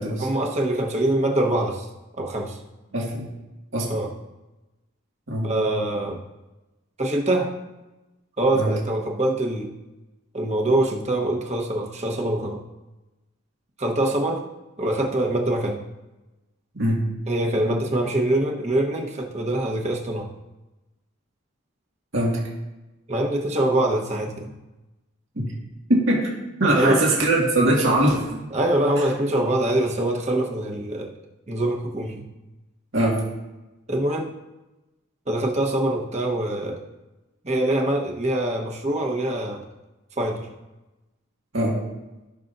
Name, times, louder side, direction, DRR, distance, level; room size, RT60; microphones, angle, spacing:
voice 1, 0.2-1.9 2.2-2.6 3.9-4.1 5.4-6.2 7.0-7.5 8.4-9.7 10.3-12.6 13.8-14.5 14.8-15.8 17.3-20.3 23.1-24.5 26.7-27.0 28.5-31.1 31.5-32.2 33.9-34.3 35.3-36.8 37.4-39.6 40.2-40.5, right 1 dB, 35° right, 0 dB, 1.2 m, -24 dB
voice 2, 2.9-3.3 3.7-3.9 5.3-5.5 8.5-8.7 16.7-17.0 22.1-22.4 25.4-25.5 25.9-26.3 26.6-28.4 32.9-33.2 41.5-41.7, right 1 dB, 70° right, -4 dB, 2.0 m, -21 dB
16.0 x 5.8 x 2.7 m, 1.0 s
head